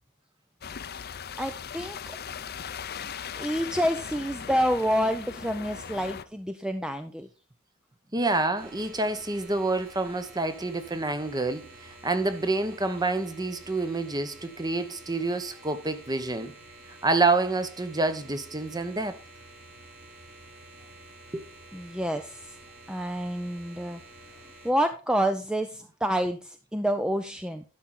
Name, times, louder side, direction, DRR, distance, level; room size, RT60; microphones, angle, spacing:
sound 1, 0.6-6.2, left 7 dB, 50° left, 0.7 m, -39 dB
voice 1, 1.4-2.2 3.4-7.3 21.7-22.6 22.9-24.0 24.6-27.6, equal, 5° right, 0.6 m, -28 dB
voice 2, 8.1-16.5 17.0-19.2 21.3-21.4, right 3 dB, 20° right, 1.0 m, -28 dB
sound 2, 8.5-24.7, right 2 dB, 50° right, 3.9 m, -50 dB
12.0 x 6.2 x 4.2 m
head